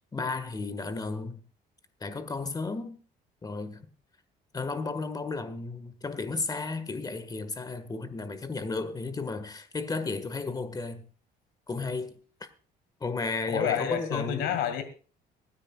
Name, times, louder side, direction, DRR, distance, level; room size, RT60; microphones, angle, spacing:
voice 1, 0.1-1.4 2.0-3.0 3.4-3.9 4.5-11.1 11.7-12.2 13.0-14.6, left 3 dB, 20° left, 1.6 m, -33 dB
voice 2, 13.5-14.8, left 9 dB, 85° left, 2.1 m, -29 dB
24.0 x 10.0 x 2.4 m
cardioid pair, 110°, 17 cm